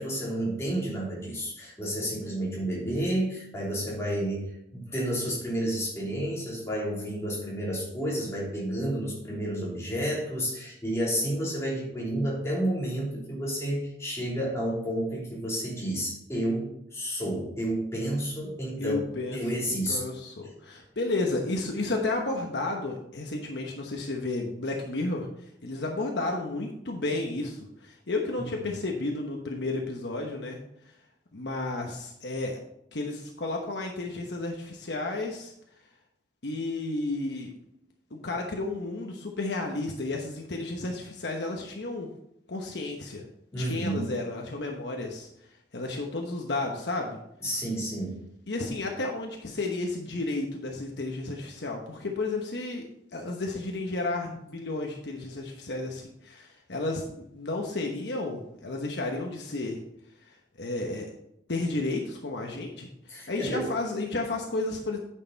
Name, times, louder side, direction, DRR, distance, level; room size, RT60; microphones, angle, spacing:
voice 1, 0.0-19.0 19.3-20.0 20.4-20.5 43.5-44.0 47.4-48.1 63.1-63.7, right 1 dB, 15° left, -5 dB, 3.3 m, -30 dB
voice 2, 18.8-25.3 25.6-30.6 31.3-32.6 32.9-35.5 36.4-37.5 38.1-42.1 42.5-43.2 43.5-45.3 45.7-47.2 48.5-52.8 53.1-59.8 60.3-61.1 61.5-65.0, left 2 dB, 75° left, 1 dB, 1.1 m, -32 dB
9.1 x 6.7 x 4.1 m, 0.78 s
head